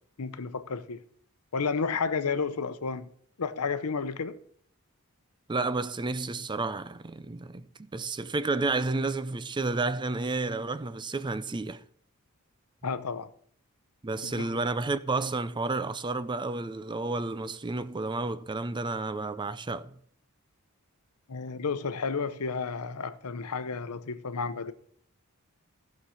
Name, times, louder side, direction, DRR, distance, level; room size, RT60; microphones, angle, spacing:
voice 1, 0.2-1.0 1.5-3.1 3.4-4.4 12.8-13.3 14.2-14.6 21.3-24.7, left 5 dB, 85° left, 0.8 m, -32 dB
voice 2, 5.5-11.8 14.0-19.9, right 3 dB, 20° right, 0.5 m, -31 dB
14.5 x 6.4 x 5.7 m
head